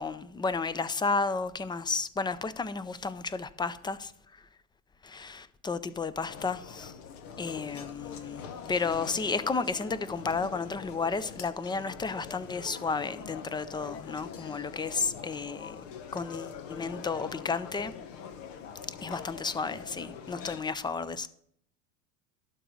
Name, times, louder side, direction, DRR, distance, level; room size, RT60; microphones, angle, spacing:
voice 1, 0.0-4.5 5.0-6.9 7.4-15.8 16.1-17.9 19.0-21.3, left 4 dB, 10° left, 0.5 m, -32 dB
sound 1, 6.3-20.6, left 7 dB, 65° left, 1.1 m, -44 dB
12.0 x 4.0 x 7.6 m
hypercardioid pair, 85°, 40 cm